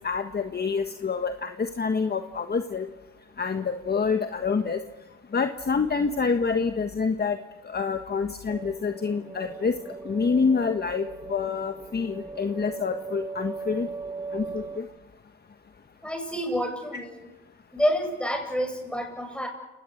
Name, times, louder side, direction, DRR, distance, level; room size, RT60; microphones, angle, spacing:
voice 1, 0.0-2.9 3.4-4.8 5.3-7.4 7.6-9.7 10.0-13.9 14.3-14.9, left 5 dB, 35° left, 7 dB, 1.5 m, -27 dB
sound 1, 8.5-14.8, right 3 dB, 10° right, 1.6 m, -38 dB
voice 2, 16.0-17.2 17.7-19.5, equal, 5° left, 3 dB, 7.9 m, -28 dB
29.5 x 19.0 x 8.0 m, 1.1 s
cardioid pair, 90°, 30 cm